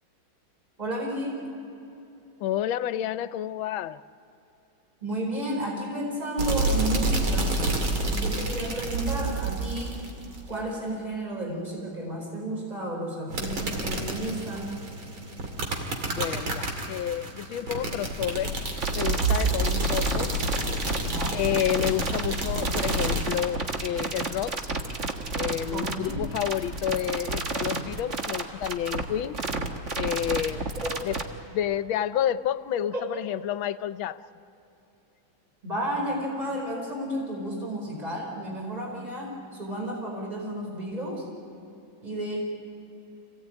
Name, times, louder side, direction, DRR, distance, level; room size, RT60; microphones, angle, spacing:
voice 1, 0.8-1.5 5.0-7.5 8.0-10.0 10.5-14.8 21.0-21.4 25.7-26.2 30.8-31.0 32.8-33.0 35.6-41.3 42.0-42.4, right 1 dB, 20° right, -1 dB, 4.7 m, -32 dB
voice 2, 2.4-4.0 16.1-18.5 18.9-20.4 21.3-24.6 25.4-29.4 29.9-30.7 31.0-31.2 31.5-34.2, left 11 dB, 80° left, 13 dB, 1.5 m, -30 dB
sound 1, 6.4-10.6 13.3-23.3, right 2 dB, 80° right, 3.3 m, -29 dB
sound 2, 18.8-31.2, right 3 dB, 40° right, 1.7 m, -31 dB
27.0 x 17.0 x 8.9 m, 2.9 s
omnidirectional pair, 2.2 m